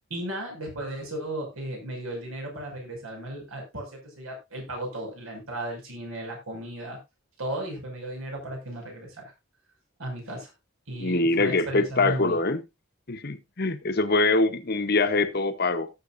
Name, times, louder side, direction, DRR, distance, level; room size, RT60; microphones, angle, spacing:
voice 1, 0.1-7.0 7.4-9.3 10.0-10.5 10.9-12.4, right 1 dB, 85° right, 5.9 m, -35 dB
voice 2, 11.0-12.6 13.1-15.9, left 3 dB, 45° left, 1.0 m, -24 dB
17.0 x 7.8 x 2.6 m
head